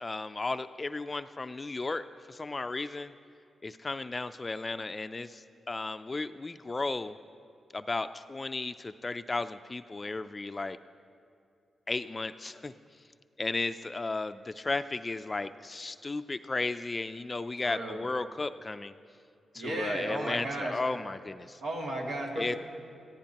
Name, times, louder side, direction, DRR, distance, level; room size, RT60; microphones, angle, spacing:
voice 1, 0.0-3.1 3.6-7.2 7.7-10.8 11.9-12.7 13.4-18.9 19.5-21.6 22.4-22.6, left 3 dB, 30° left, 11 dB, 0.4 m, -34 dB
voice 2, 17.6-18.0 19.5-20.7 21.6-22.6, right 1 dB, 85° right, -2 dB, 2.2 m, -34 dB
21.0 x 15.0 x 2.9 m, 2.4 s
cardioid pair, 80°, 0 cm